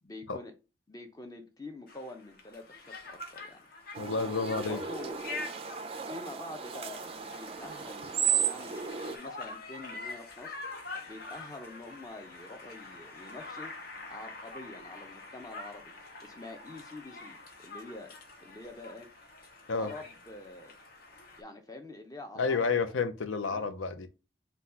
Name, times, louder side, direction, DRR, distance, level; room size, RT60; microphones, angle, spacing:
voice 1, 0.0-0.5 0.9-3.7 4.5-5.2 6.1-10.6 11.1-15.9 16.2-19.1 19.8-20.8 21.4-22.7 23.5-23.7, left 2 dB, 20° left, 0.6 m, -46 dB
Conversation, 1.9-21.4, left 3 dB, 50° left, 0.8 m, -46 dB
voice 2, 4.0-4.8 19.7-19.9 22.4-24.1, left 4 dB, 80° left, 0.6 m, -30 dB
sound 1, 4.0-9.2, right 8 dB, 30° right, 0.3 m, -34 dB
4.0 x 2.3 x 4.2 m
head